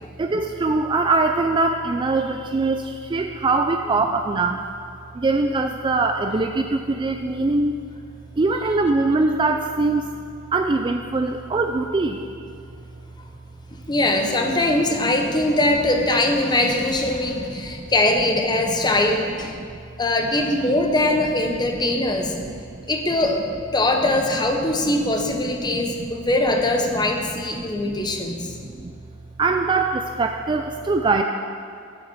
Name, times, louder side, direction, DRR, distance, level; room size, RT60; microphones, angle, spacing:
voice 1, 0.2-4.6 5.1-7.8 8.4-10.1 10.5-12.2 13.9-14.0 15.0-15.1 17.2-17.8 18.6-18.9 19.6-19.7 21.6-21.8 22.1-22.5 24.8-25.0 25.7-26.1 27.0-27.1 27.6-28.9 29.4-31.2, right 3 dB, 25° right, 5 dB, 0.3 m, -23 dB
voice 2, 13.7-19.6 20.0-22.3 22.9-23.4 23.7-28.5, left 2 dB, 20° left, 3 dB, 0.9 m, -21 dB
7.7 x 6.7 x 7.0 m, 2.3 s
head